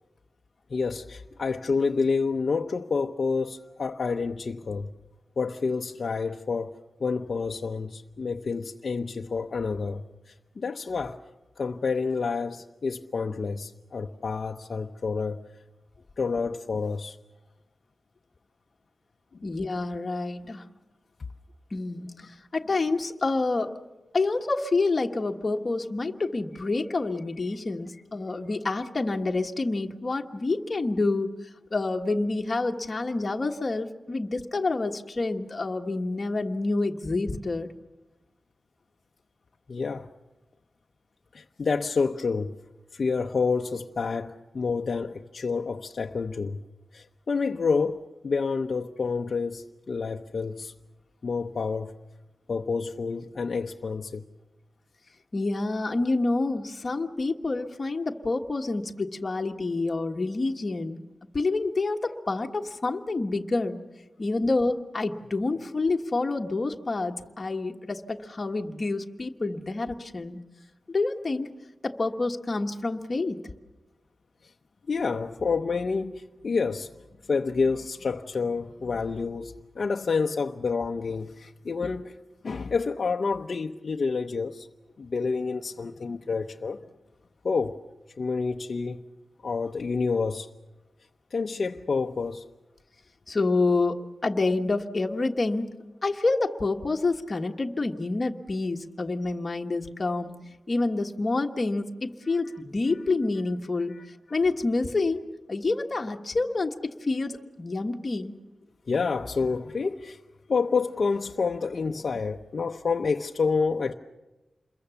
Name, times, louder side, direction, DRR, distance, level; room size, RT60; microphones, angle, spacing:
voice 1, 0.7-4.9 5.4-6.7 7.0-11.2 11.6-15.4 16.2-17.2 39.7-40.1 41.3-42.5 42.9-46.6 46.9-50.7 51.2-51.9 52.5-54.2 64.2-64.3 74.9-76.9 77.3-82.1 82.4-84.7 85.0-86.8 87.4-87.8 88.2-89.0 89.4-90.5 91.3-92.4 103.9-104.0 108.9-110.2 110.5-113.9, left 4 dB, 55° left, 0.8 m, -28 dB
voice 2, 19.4-20.6 21.7-23.7 24.1-31.3 31.7-37.7 55.3-61.0 61.3-63.8 64.2-70.4 70.9-71.5 71.8-73.5 93.3-95.7 96.0-100.4 100.7-104.0 104.3-105.2 105.5-108.3, left 3 dB, 35° left, 1.4 m, -28 dB
28.0 x 22.0 x 7.0 m
wide cardioid pair, 105°, 0 cm